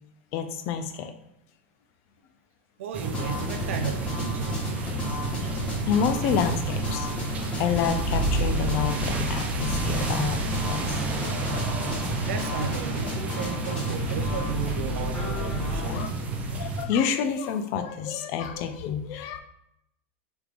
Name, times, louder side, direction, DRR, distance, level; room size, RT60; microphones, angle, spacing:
voice 1, 0.3-1.1 3.0-3.2 3.6-3.7 5.3-7.1 7.6-10.9 11.3-12.1 15.4-16.1 16.5-19.4, left 7 dB, 45° left, 8 dB, 0.4 m, -29 dB
voice 2, 2.8-4.7 12.3-16.0, right 7 dB, 80° right, 6 dB, 0.5 m, -34 dB
sound 1, 2.9-16.8, right 3 dB, 20° right, 0.5 m, -31 dB
sound 2, 3.1-16.1, left 2 dB, 20° left, 1.0 m, -33 dB
sound 3, 5.1-15.4, right 2 dB, 55° right, 1.2 m, -35 dB
3.4 x 3.2 x 2.4 m, 0.80 s
supercardioid pair, 135°, 7 cm